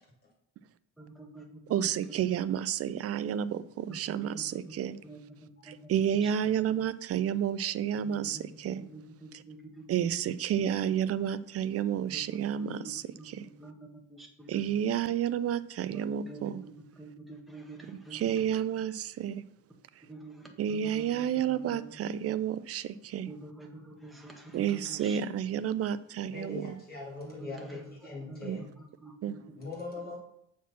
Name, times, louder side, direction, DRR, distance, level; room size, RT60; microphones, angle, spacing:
voice 1, 1.0-2.1 3.9-6.8 7.9-10.6 12.1-12.4 12.7-13.3 13.6-14.7 15.9-18.5 20.1-22.0 23.3-25.2 27.2-29.4, right 2 dB, ahead, 1.3 m, -48 dB
voice 2, 1.7-5.0 5.6-8.8 9.9-13.5 14.5-16.6 18.1-19.4 20.0-20.1 20.6-23.3 24.5-26.7 28.4-28.6 29.2-29.4, right 9 dB, 40° right, 0.4 m, -31 dB
voice 3, 26.3-28.7 29.6-30.2, left 3 dB, 25° left, 2.9 m, -41 dB
7.2 x 4.3 x 5.9 m
cardioid pair, 135°, 39 cm